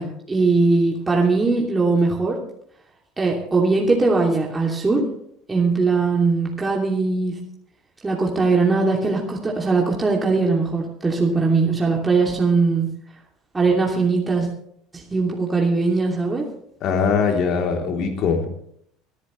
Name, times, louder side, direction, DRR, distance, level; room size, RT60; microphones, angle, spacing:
voice 1, 0.0-2.4 3.2-5.1 5.5-7.4 8.0-12.9 13.5-14.5 14.9-16.5, right 3 dB, 20° right, -1 dB, 2.9 m, -20 dB
voice 2, 16.8-18.5, left 5 dB, 55° left, 2 dB, 3.4 m, -21 dB
25.0 x 10.0 x 3.3 m, 0.69 s
hypercardioid pair, 75°, 0 cm